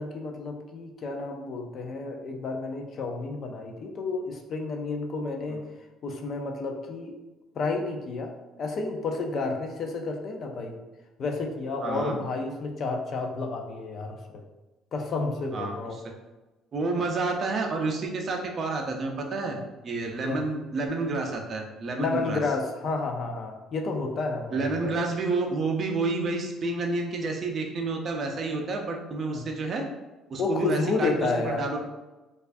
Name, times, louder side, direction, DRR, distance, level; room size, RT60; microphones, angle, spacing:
voice 1, 0.0-5.6 6.0-7.1 7.6-8.3 8.6-10.8 11.2-14.4 14.9-16.0 20.2-20.4 22.0-25.0 29.3-29.4 30.4-31.6, left 3 dB, 40° left, 3 dB, 0.4 m, -31 dB
voice 2, 11.8-12.2 15.5-15.7 16.7-19.6 19.8-22.4 24.5-29.9 30.3-31.8, right 3 dB, 35° right, 2 dB, 0.5 m, -29 dB
4.5 x 2.4 x 2.5 m, 1.1 s
cardioid pair, 145°, 0 cm